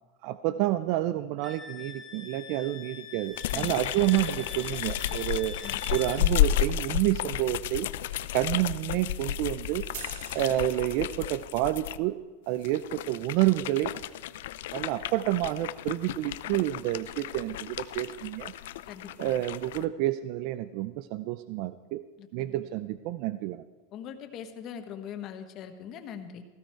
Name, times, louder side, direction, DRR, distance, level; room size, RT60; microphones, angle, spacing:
voice 1, 0.2-5.6 5.9-7.9 8.3-9.9 10.3-12.2 12.5-13.9 14.7-18.5 19.2-22.0 22.3-23.6, right 15 dB, 50° right, 14 dB, 0.5 m, -29 dB
Wind instrument woodwind instrument, 1.4-6.2, left 5 dB, 15° left, 1.4 m, -44 dB
sound 1, 3.3-12.0 12.6-19.8, left 12 dB, 75° left, 0.5 m, -32 dB
sound 2, 9.9-11.6, right 10 dB, 65° right, 1.3 m, -45 dB
voice 2, 18.9-19.4 22.2-22.6 23.9-26.4, left 8 dB, 35° left, 7 dB, 1.3 m, -41 dB
17.5 x 15.0 x 4.5 m, 1.3 s
supercardioid pair, 155°, 0 cm